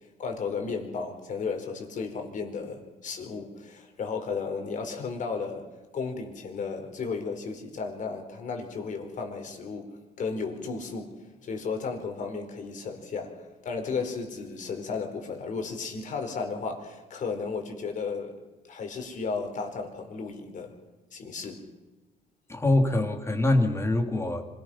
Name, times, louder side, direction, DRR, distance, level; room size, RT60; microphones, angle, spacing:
voice 1, 0.2-5.7 5.9-18.4 18.6-20.8 21.1-21.7, left 4 dB, 50° left, 4 dB, 4.5 m, -34 dB
voice 2, 22.5-24.5, left 2 dB, 15° left, 5 dB, 2.8 m, -24 dB
25.5 x 18.5 x 5.8 m, 1.2 s
cardioid pair, 110°, 17 cm